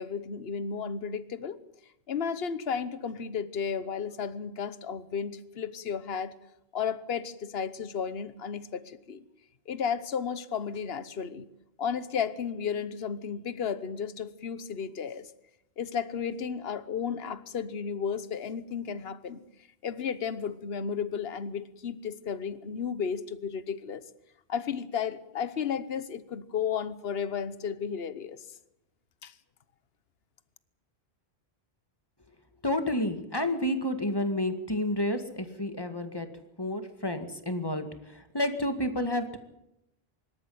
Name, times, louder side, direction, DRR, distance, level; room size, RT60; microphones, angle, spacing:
voice 1, 0.0-1.6 2.1-6.3 6.7-9.2 9.7-11.5 11.8-15.3 15.8-19.4 19.8-24.1 24.5-28.4 29.2-29.3, left 7 dB, 70° left, 14 dB, 1.3 m, -33 dB
voice 2, 32.6-36.3 36.6-39.4, left 1 dB, 25° left, 7 dB, 2.1 m, -30 dB
25.0 x 13.0 x 9.4 m, 0.85 s
omnidirectional pair, 1.0 m